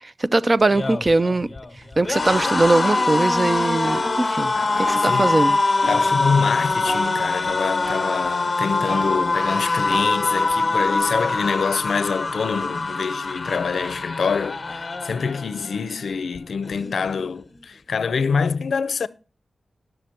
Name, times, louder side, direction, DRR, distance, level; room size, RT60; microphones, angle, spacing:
voice 1, 0.0-1.5 2.0-5.6, right 2 dB, 30° right, 0.4 m, -21 dB
sound 1, 0.6-15.8 16.1-16.4 16.6-17.4, left 3 dB, 30° left, 1.2 m, -24 dB
pan filmshots, 2.9-4.5 4.8-6.5 6.8-8.5 8.9-11.0, right 1 dB, 50° right, 2.4 m, -35 dB
voice 2, 4.6-5.4 5.9-19.1, left 5 dB, 90° left, 0.5 m, -25 dB
11.5 x 6.7 x 4.3 m
wide cardioid pair, 135°, 0 cm